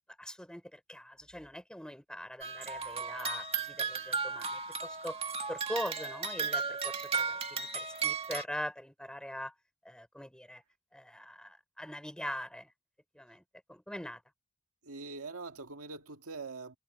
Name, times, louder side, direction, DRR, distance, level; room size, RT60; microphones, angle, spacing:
voice 1, 0.2-5.2 5.5-9.5 9.8-10.6 10.9-12.7 13.1-13.4 13.7-14.2, equal, 5° left, 5.8 m, -42 dB
sound 1, 2.4-8.4, right 5 dB, 25° right, 1.9 m, -35 dB
voice 2, 14.8-16.8, right 3 dB, 75° right, 1.9 m, -43 dB
head